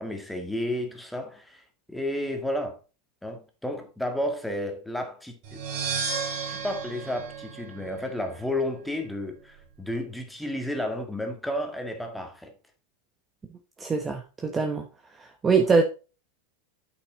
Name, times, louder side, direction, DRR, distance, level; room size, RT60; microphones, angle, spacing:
voice 1, 0.0-1.6 1.9-2.8 3.2-5.6 6.5-12.5, left 1 dB, 5° left, 1.8 m, -32 dB
sound 1, 5.4-8.3, right 5 dB, 50° right, 3.7 m, -33 dB
voice 2, 13.8-14.8 15.4-15.8, right 4 dB, 20° right, 1.0 m, -22 dB
8.3 x 6.1 x 3.9 m
supercardioid pair, 130°, 0 cm